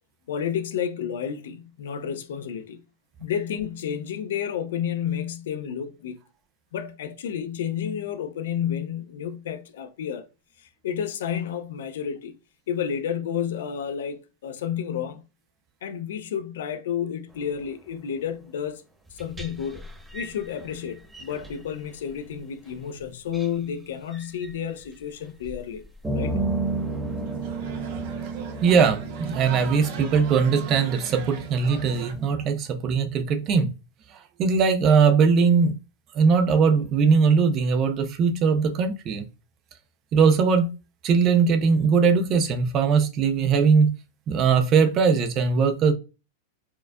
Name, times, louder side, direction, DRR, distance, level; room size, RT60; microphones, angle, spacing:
voice 1, 0.3-2.8 3.2-6.2 6.7-10.3 10.6-12.4 12.7-15.2 15.8-18.8 19.1-19.9 20.1-25.8 26.1-26.4, left 8 dB, 75° left, 0.5 m, -31 dB
sound 1, 19.1-21.6 22.7-22.8 23.3-23.4 24.1-24.5 25.4-25.6 25.8-32.3, right 3 dB, 10° right, 1.0 m, -33 dB
sound 2, 26.9-32.1, right 7 dB, 50° right, 0.7 m, -41 dB
voice 2, 28.6-33.7 34.4-35.8 36.1-39.2 40.1-40.7 41.0-43.9 44.3-45.9, right 5 dB, 25° right, 0.4 m, -20 dB
4.4 x 2.4 x 2.2 m
supercardioid pair, 175°, 0 cm